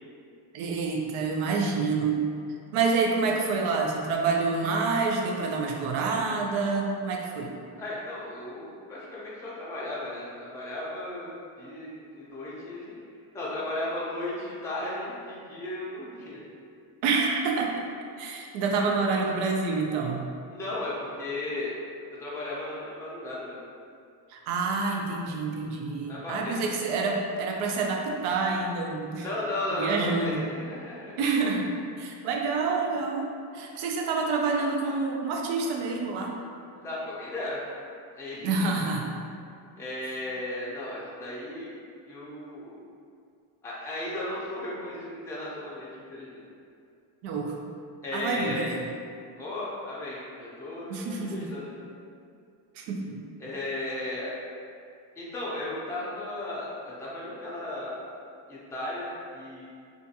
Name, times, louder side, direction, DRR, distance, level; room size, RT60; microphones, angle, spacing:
voice 1, 0.5-2.2 2.7-7.5 17.0-17.7 18.2-20.3 24.3-29.3 29.7-30.4 31.2-33.3 33.5-36.4 38.4-39.2 47.2-47.6 48.1-48.7 50.9-51.5 52.8-53.2, right 4 dB, 90° right, 1 dB, 0.5 m, -27 dB
voice 2, 7.8-12.9 13.3-16.4 20.5-21.8 22.2-23.6 26.0-26.6 29.2-31.2 36.7-37.6 38.2-38.7 39.8-41.7 42.1-42.8 43.6-46.4 48.0-48.7 49.4-51.7 53.4-54.3 55.2-56.7 57.0-58.0 58.5-59.7, left 1 dB, 5° left, -8 dB, 0.3 m, -35 dB
2.5 x 2.2 x 2.7 m, 2.4 s
cardioid pair, 120°, 48 cm